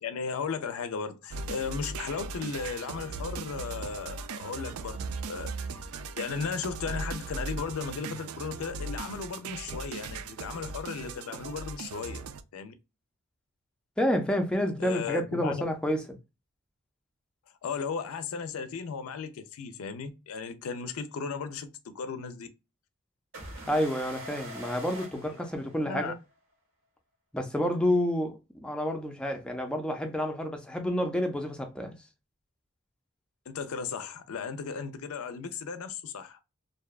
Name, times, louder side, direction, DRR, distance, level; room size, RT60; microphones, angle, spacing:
voice 1, 0.0-5.7 6.2-12.2 12.5-12.7 14.8-15.6 17.6-22.5 25.8-26.1 33.5-36.4, left 5 dB, 75° left, 0.4 m, -36 dB
sound 1, 1.3-12.4, right 4 dB, 80° right, 0.3 m, -38 dB
voice 2, 14.0-16.0 23.7-26.1 27.3-32.0, equal, 5° left, 0.4 m, -29 dB
sound 2, 23.3-26.1, equal, 60° right, 1.1 m, -43 dB
2.6 x 2.2 x 2.2 m
head